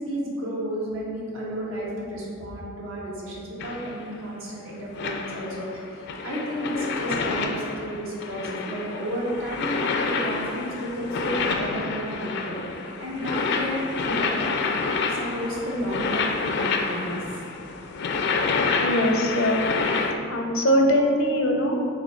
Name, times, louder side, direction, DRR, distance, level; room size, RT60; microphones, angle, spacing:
voice 1, 0.0-9.8 10.1-14.4 15.0-17.4, equal, 85° right, -5 dB, 1.5 m, -32 dB
sound 1, 3.6-4.2 4.9-20.1, left 4 dB, 55° left, 0.4 m, -28 dB
voice 2, 18.8-19.6 20.3-21.8, equal, 80° left, 2 dB, 0.8 m, -21 dB
6.6 x 3.2 x 4.5 m, 2.4 s
head